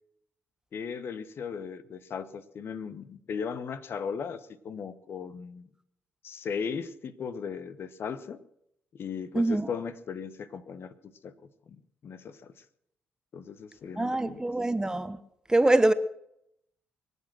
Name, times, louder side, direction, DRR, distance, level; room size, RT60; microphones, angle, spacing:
voice 1, 0.7-5.7 6.2-8.4 8.9-11.3 12.0-12.5 13.3-14.4, left 6 dB, 55° left, 1.2 m, -37 dB
voice 2, 9.3-9.7 14.0-15.2 15.5-15.9, right 2 dB, 15° right, 1.1 m, -24 dB
23.0 x 8.3 x 6.2 m
hypercardioid pair, 45°, 5 cm